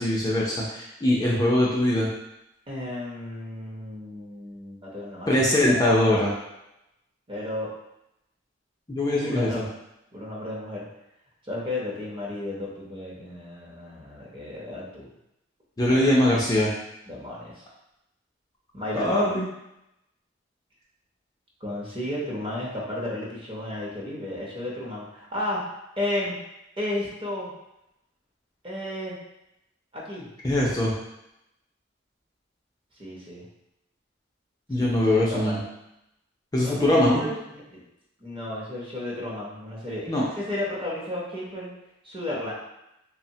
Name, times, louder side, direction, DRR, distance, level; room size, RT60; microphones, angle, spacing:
voice 1, 0.0-2.1 5.3-6.3 8.9-9.6 15.8-16.7 18.9-19.5 30.4-30.9 34.7-35.6 36.5-37.2 40.1-40.2, left 1 dB, 20° left, -5 dB, 0.4 m, -22 dB
voice 2, 2.7-5.8 7.3-7.7 9.2-9.6 10.1-10.9 11.4-15.1 15.9-16.1 17.1-17.6 18.7-19.3 21.6-25.6 26.0-26.4 26.8-27.5 28.6-29.2 29.9-30.3 33.0-33.5 34.8-35.6 36.6-37.8 38.2-41.7 42.0-42.5, left 1 dB, 25° right, -5 dB, 0.7 m, -33 dB
3.1 x 2.1 x 2.7 m, 0.88 s
head